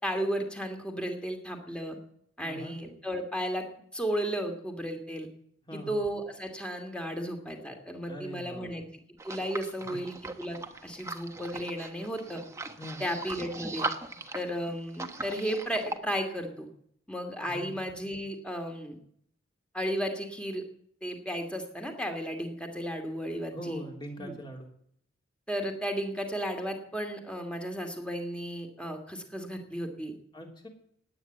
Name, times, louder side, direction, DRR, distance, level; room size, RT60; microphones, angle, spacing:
voice 1, 0.0-2.0 2.4-3.6 3.9-5.3 5.7-8.8 9.2-12.4 13.0-13.9 14.3-16.7 17.1-19.0 19.7-20.6 21.0-23.8 24.2-24.3 25.5-30.1, equal, 5° left, 4 dB, 2.5 m, -34 dB
voice 2, 2.4-2.8 5.7-6.0 8.0-8.7 9.8-10.0 12.8-13.2 17.4-17.7 23.5-24.7 30.3-30.7, right 1 dB, 25° left, 2 dB, 3.2 m, -42 dB
sound 1, 9.2-16.0, right 3 dB, 15° right, 1.1 m, -39 dB
18.0 x 9.6 x 8.1 m, 0.68 s
head